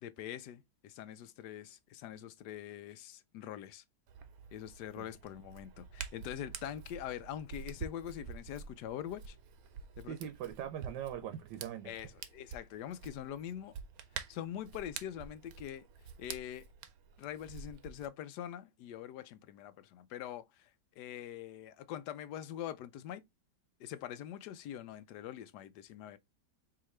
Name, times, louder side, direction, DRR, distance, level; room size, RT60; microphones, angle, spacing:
voice 1, 0.0-3.8 4.5-9.4 10.0-10.2 11.8-13.8 14.3-15.9 16.2-16.7 17.2-20.7 21.0-23.2 23.8-26.2, left 10 dB, 80° left, 1.2 m, -44 dB
Hands, 4.1-18.1, right 7 dB, 65° right, 1.0 m, -48 dB
voice 2, 10.1-11.9, right 10 dB, 85° right, 1.3 m, -41 dB
4.8 x 2.9 x 3.1 m
omnidirectional pair, 1.8 m